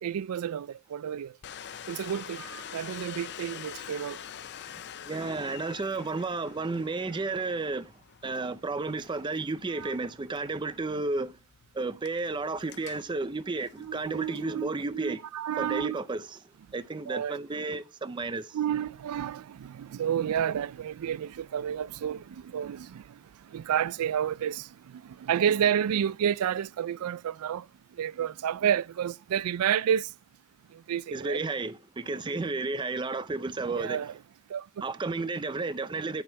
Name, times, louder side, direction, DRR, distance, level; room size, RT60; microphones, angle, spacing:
voice 1, 0.0-1.4 1.9-4.2 9.8-9.9 13.8-16.0 17.1-17.4 18.5-30.1 30.7-31.4 33.7-34.1 34.5-34.7, right 9 dB, 90° right, 0.3 m, -30 dB
Domestic sounds home sounds, 1.4-14.5, left 9 dB, 50° left, 0.5 m, -46 dB
voice 2, 5.0-7.9 8.2-11.4 11.7-15.2 15.6-16.4 16.7-18.6 31.1-34.0 34.8-36.2, right 3 dB, 20° right, 0.4 m, -32 dB
9.4 x 5.6 x 4.5 m
head